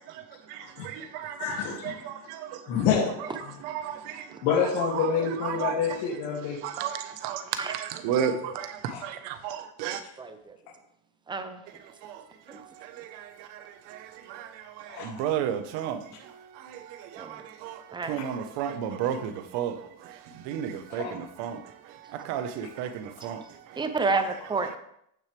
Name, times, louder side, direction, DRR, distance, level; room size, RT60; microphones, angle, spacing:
voice 1, 0.0-2.7 3.6-4.4 4.9-5.1 5.4-6.0 6.6-10.0 11.7-24.3 24.6-24.8, right 9 dB, 65° right, 1.3 m, -34 dB
voice 2, 1.4-2.1 2.7-3.1 3.4-3.6 4.4-6.6 8.3-8.4 8.9-9.0 14.9-15.2 21.0-21.2, left 7 dB, 80° left, 2.6 m, -28 dB
voice 3, 10.2-10.6 11.3-11.6 12.5-12.6 17.2-17.4 17.9-18.1 23.8-24.8, right 3 dB, 10° right, 0.6 m, -29 dB
15.0 x 6.4 x 3.4 m
cardioid pair, 155°, 44 cm